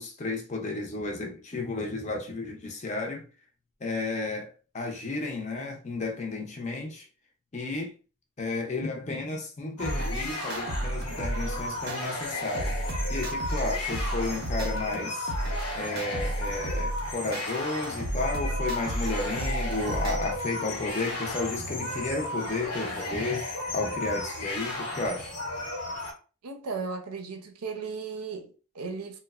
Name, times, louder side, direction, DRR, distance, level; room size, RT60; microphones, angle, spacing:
voice 1, 0.0-3.3 3.8-7.1 7.5-7.9 8.4-12.8 13.1-15.3 15.8-23.4 23.7-25.4, left 3 dB, 30° left, 0.5 m, -33 dB
sound 1, 9.8-26.1, left 1 dB, 90° left, 0.9 m, -34 dB
sound 2, 9.8-12.0 12.4-15.0 15.3-17.4 17.8-20.4, right 1 dB, 45° right, 0.5 m, -32 dB
voice 2, 26.4-29.2, right 4 dB, 90° right, 0.6 m, -36 dB
3.0 x 2.0 x 2.3 m
head